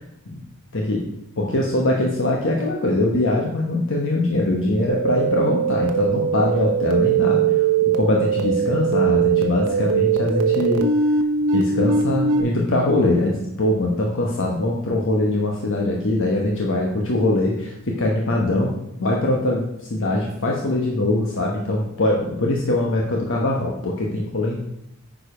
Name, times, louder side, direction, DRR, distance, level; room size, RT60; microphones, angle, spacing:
voice 1, 0.7-1.0 1.4-10.9 11.5-18.7 19.0-24.7, left 1 dB, 60° left, -1 dB, 1.1 m, -22 dB
sound 1, 4.9-12.4, right 6 dB, 85° right, 1.0 m, -21 dB
9.5 x 5.1 x 5.0 m, 0.82 s
head